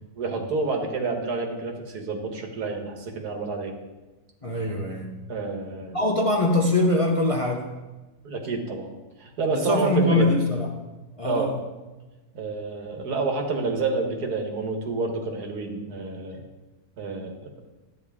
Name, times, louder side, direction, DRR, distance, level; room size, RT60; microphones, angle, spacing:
voice 1, 0.2-3.7 5.3-6.0 8.2-8.9 9.2-10.3 11.2-11.5 12.3-16.4 17.0-17.5, right 3 dB, 75° right, 3 dB, 1.9 m, -28 dB
voice 2, 4.4-5.3 5.9-7.7 9.5-10.9 11.2-11.6, left 2 dB, 30° left, 1 dB, 0.6 m, -23 dB
12.5 x 9.1 x 3.6 m, 1.2 s
omnidirectional pair, 1.7 m